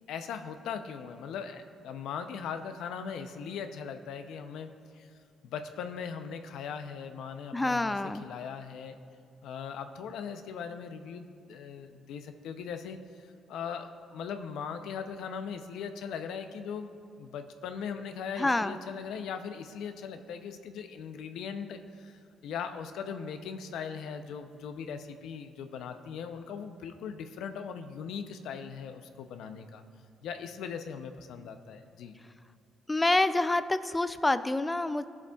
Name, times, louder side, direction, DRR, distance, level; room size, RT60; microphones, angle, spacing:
voice 1, 0.1-4.7 4.9-5.1 5.4-8.9 9.4-16.9 17.2-29.8 30.2-32.2, left 6 dB, 85° left, 8 dB, 0.5 m, -39 dB
voice 2, 7.5-8.2 18.4-18.8 32.9-35.0, left 2 dB, 15° left, 12 dB, 0.3 m, -27 dB
16.5 x 7.1 x 2.3 m, 2.3 s
cardioid pair, 90°, 0 cm